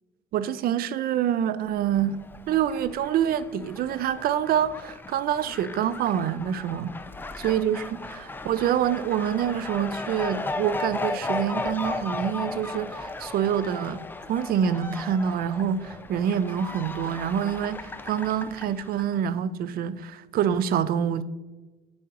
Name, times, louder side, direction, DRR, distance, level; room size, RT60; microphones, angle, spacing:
voice 1, 0.3-2.2 2.5-7.0 7.4-14.0 14.3-21.2, right 9 dB, 60° right, 0.5 m, -26 dB
Fowl, 1.8-19.2, left 3 dB, 10° left, 0.4 m, -36 dB
8.6 x 4.8 x 2.9 m
cardioid pair, 110°, 17 cm